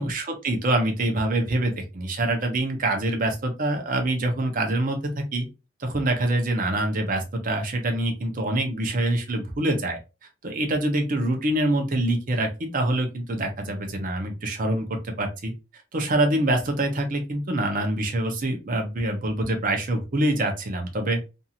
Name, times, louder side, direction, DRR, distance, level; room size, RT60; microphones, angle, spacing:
voice 1, 0.0-5.5 5.8-10.0 10.4-15.5 15.9-21.2, right 1 dB, 45° right, 3 dB, 0.7 m, -25 dB
2.6 x 2.5 x 2.8 m, 0.28 s
head